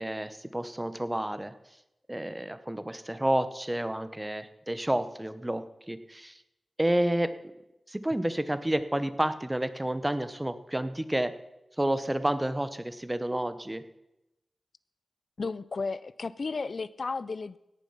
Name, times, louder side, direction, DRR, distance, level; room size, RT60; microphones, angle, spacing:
voice 1, 0.0-1.5 2.1-6.4 6.8-7.3 7.9-11.3 11.8-13.8, right 1 dB, 15° right, 12 dB, 0.9 m, -30 dB
voice 2, 15.4-17.6, left 4 dB, 60° left, 17 dB, 0.4 m, -33 dB
17.5 x 7.2 x 5.7 m, 0.90 s
wide cardioid pair, 70°, 0 cm